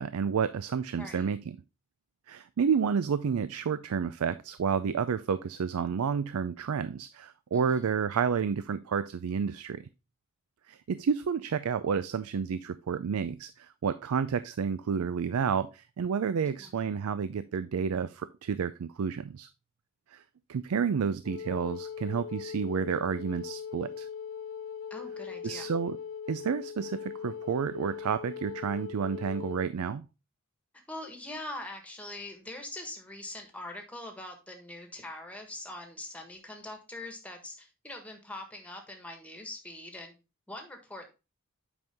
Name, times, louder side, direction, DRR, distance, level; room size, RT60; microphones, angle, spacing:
voice 1, 0.0-1.6 2.3-9.8 10.7-19.5 20.1-20.2 20.5-24.1 25.4-26.0 26.3-30.1, right 6 dB, 85° right, 14 dB, 0.4 m, -30 dB
voice 2, 1.0-1.3 7.5-7.9 16.4-16.9 24.9-25.7 30.9-40.1 40.5-41.1, left 1 dB, 5° left, 4 dB, 1.4 m, -43 dB
Wind instrument woodwind instrument, 21.2-29.7, left 7 dB, 60° left, 0.4 m, -40 dB
8.0 x 5.4 x 3.4 m, 0.28 s
head